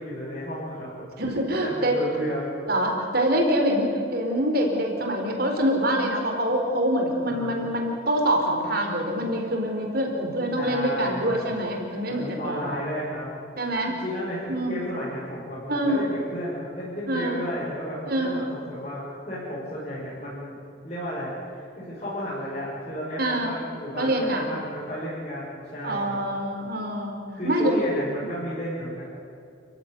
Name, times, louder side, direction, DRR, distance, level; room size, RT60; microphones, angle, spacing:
voice 1, 0.0-1.0 1.5-2.5 7.2-7.5 10.5-11.4 12.1-13.3 13.8-20.6 20.8-26.2 27.3-29.0, equal, 35° left, -9 dB, 6.6 m, -33 dB
voice 2, 1.2-2.0 2.7-12.7 13.6-14.0 14.5-14.8 15.7-16.0 17.1-17.4 18.1-18.4 23.2-23.5 24.0-24.4 25.8-27.7, right 1 dB, 50° right, 2 dB, 4.5 m, -25 dB
30.0 x 15.5 x 9.8 m, 2.5 s
head